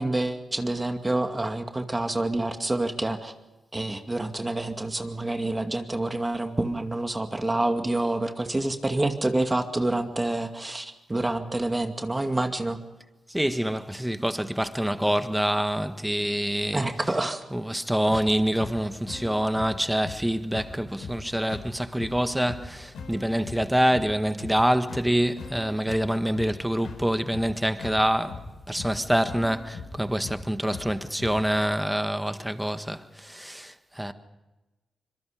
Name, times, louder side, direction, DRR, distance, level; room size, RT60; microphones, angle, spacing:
voice 1, 0.0-3.3 3.7-12.8 16.7-17.4 18.1-18.2, right 2 dB, 25° right, 2.3 m, -27 dB
voice 2, 13.3-17.1 17.5-34.1, equal, 5° right, 1.7 m, -26 dB
sound 1, 18.1-31.5, left 4 dB, 80° left, 4.2 m, -41 dB
25.5 x 22.5 x 5.1 m
supercardioid pair, 45°, 0 cm